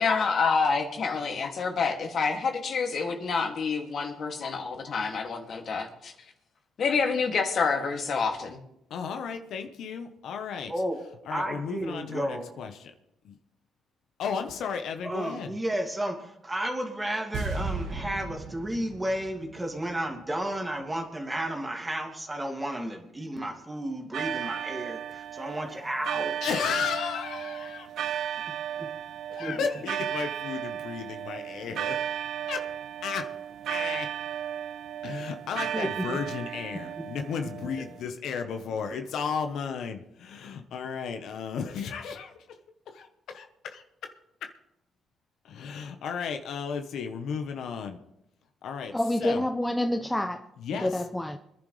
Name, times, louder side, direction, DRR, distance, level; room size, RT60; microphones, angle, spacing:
voice 1, 0.0-6.1 6.8-8.6, left 5 dB, 55° left, 2 dB, 2.5 m, -27 dB
voice 2, 8.9-10.7 11.2-12.9 13.2-13.4 14.2-15.5 26.4-27.9 29.3-32.0 32.5-32.7 33.0-33.3 33.7-34.1 35.0-42.6 42.9-44.1 44.4-44.5 45.4-48.0 48.6-49.4 50.6-51.0, left 6 dB, 75° left, 6 dB, 1.2 m, -34 dB
voice 3, 10.7-11.0 11.3-12.5 15.0-26.4 28.8-28.9 29.4-29.7 35.6-36.2 36.8-36.9, right 1 dB, 15° right, 2 dB, 2.5 m, -32 dB
sound 1, 17.3-20.5 20.8-20.9, right 3 dB, 90° right, 2.2 m, -36 dB
sound 2, 24.1-38.0, right 10 dB, 70° right, 0.4 m, -35 dB
voice 4, 48.9-50.4 50.8-51.4, left 1 dB, 10° left, 6 dB, 0.7 m, -27 dB
25.0 x 10.5 x 3.4 m, 0.82 s
cardioid pair, 90°, 0 cm